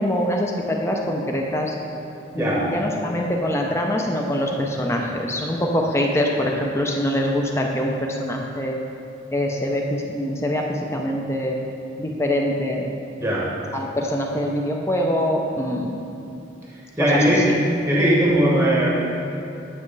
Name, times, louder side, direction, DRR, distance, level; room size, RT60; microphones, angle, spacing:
voice 1, 0.0-1.7 2.3-8.8 9.3-11.6 12.0-12.9 13.7-16.0 17.0-17.2, equal, 15° left, 0 dB, 0.5 m, -24 dB
voice 2, 2.3-2.7 13.2-13.5 17.0-17.5 17.9-19.0, equal, 15° right, -4 dB, 0.9 m, -19 dB
9.2 x 6.3 x 3.3 m, 2.8 s
head